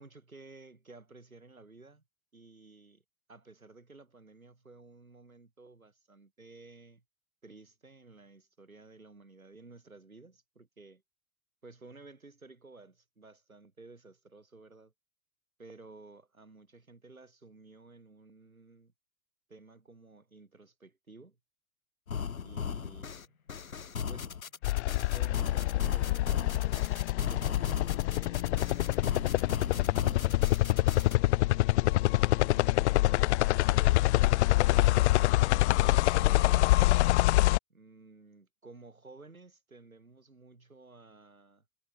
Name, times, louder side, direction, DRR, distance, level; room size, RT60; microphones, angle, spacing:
voice 1, 0.0-2.0 2.3-3.0 3.3-7.0 7.4-11.0 11.6-14.9 15.6-18.9 19.5-21.4 22.4-23.4 24.1-24.5 25.1-29.1 29.7-33.4 33.7-35.2 35.8-36.8 37.7-41.6, right 3 dB, 90° right, 2.8 m, -53 dB
sound 1, 22.1-31.2, left 6 dB, 80° left, 1.5 m, -37 dB
sound 2, 24.6-37.6, left 18 dB, 55° left, 0.6 m, -25 dB
figure-of-eight pair, 85°, 41 cm